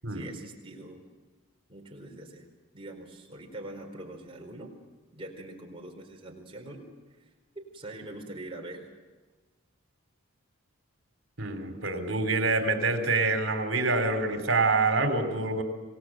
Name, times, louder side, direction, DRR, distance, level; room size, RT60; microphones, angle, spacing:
voice 1, 0.1-1.0 1.7-2.5 2.7-4.7 5.1-6.8 7.5-8.9, right 1 dB, 25° right, 0 dB, 4.4 m, -43 dB
voice 2, 11.4-15.6, right 3 dB, 65° right, 6 dB, 3.6 m, -26 dB
27.0 x 19.0 x 7.7 m, 1.3 s
head